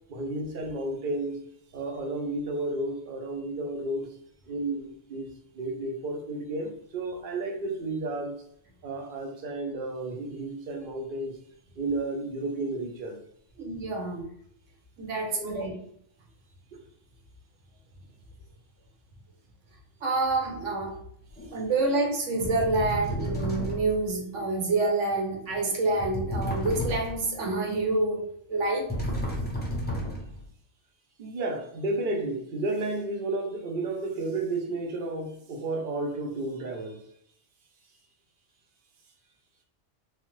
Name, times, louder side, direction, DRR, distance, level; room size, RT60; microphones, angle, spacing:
voice 1, 0.1-1.4 1.7-4.1 4.5-5.3 5.5-8.4 8.8-11.4 11.8-13.2 15.3-15.9 16.7-16.8 31.2-37.0, right 2 dB, 55° right, 0.7 m, -32 dB
voice 2, 13.6-14.3 15.0-15.7 20.0-21.0 21.5-28.9, right 2 dB, 80° right, 1.1 m, -27 dB
sound 1, 21.4-21.6 22.4-24.1 26.0-27.3 28.9-30.4, equal, 15° left, 0.4 m, -32 dB
3.1 x 2.1 x 3.0 m
omnidirectional pair, 1.3 m